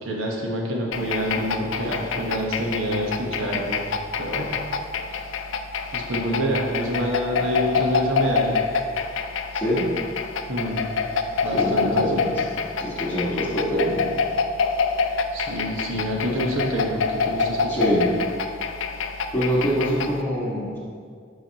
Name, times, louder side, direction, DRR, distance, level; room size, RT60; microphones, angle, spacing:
voice 1, 0.0-3.8 4.2-4.5 5.9-8.6 10.5-10.9 11.4-12.2 15.3-17.9, equal, 85° right, -1 dB, 1.2 m, -27 dB
sound 1, 0.9-20.2, left 5 dB, 80° left, 0.4 m, -27 dB
voice 2, 9.5-9.9 11.4-12.4 12.8-14.1 17.7-18.1 19.3-20.8, equal, 10° left, -8 dB, 1.6 m, -24 dB
11.5 x 4.7 x 2.9 m, 2.1 s
head